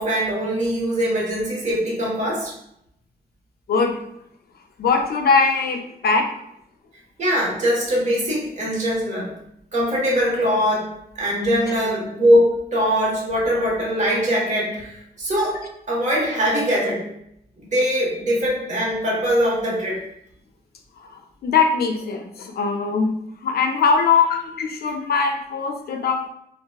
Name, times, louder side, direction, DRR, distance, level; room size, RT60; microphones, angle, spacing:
voice 1, 0.0-2.5 7.2-9.3 9.7-15.6 15.9-17.1 17.6-20.0, equal, 45° right, -4 dB, 1.1 m, -22 dB
voice 2, 4.8-6.3 21.0-23.1 23.4-26.3, left 5 dB, 70° left, 4 dB, 0.4 m, -21 dB
3.6 x 2.3 x 2.2 m, 0.77 s
wide cardioid pair, 145°, 17 cm